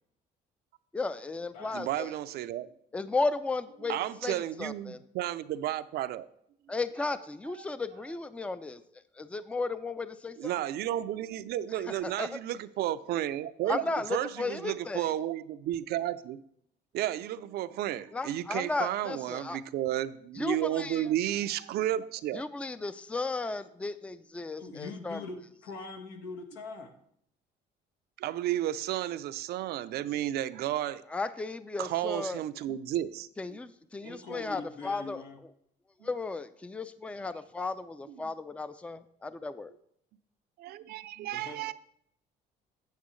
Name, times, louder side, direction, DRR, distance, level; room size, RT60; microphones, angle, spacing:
voice 1, 0.9-2.1 2.9-4.0 4.2-5.0 6.7-8.8 9.2-10.5 12.0-12.4 13.7-15.1 18.1-19.6 20.4-21.0 22.3-25.2 31.1-32.4 33.4-35.2 36.0-39.7, left 3 dB, 5° left, 13 dB, 0.4 m, -34 dB
voice 2, 1.7-2.7 3.9-6.3 10.4-16.4 16.9-22.4 28.2-31.0 31.8-33.6 34.0-34.2 38.1-38.2 40.6-41.7, right 12 dB, 70° right, 14 dB, 0.5 m, -32 dB
voice 3, 24.6-26.9 34.0-35.4 41.3-41.6, left 3 dB, 85° left, 4 dB, 1.4 m, -42 dB
8.7 x 8.3 x 3.1 m, 0.70 s
cardioid pair, 110°, 17 cm